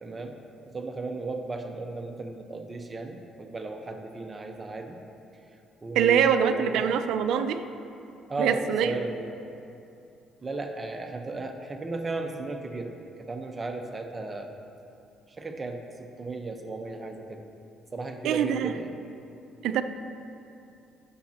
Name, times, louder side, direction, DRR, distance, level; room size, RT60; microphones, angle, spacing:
voice 1, 0.0-5.0 5.8-7.0 8.3-9.2 10.4-12.9 13.2-14.5 15.4-17.4 17.9-19.0, right 3 dB, 30° right, 4 dB, 1.0 m, -35 dB
voice 2, 5.9-7.6 8.4-8.9 18.2-18.7 19.6-19.8, right 8 dB, 75° right, 9 dB, 0.6 m, -24 dB
20.5 x 7.4 x 2.9 m, 2.7 s
supercardioid pair, 80°, 0 cm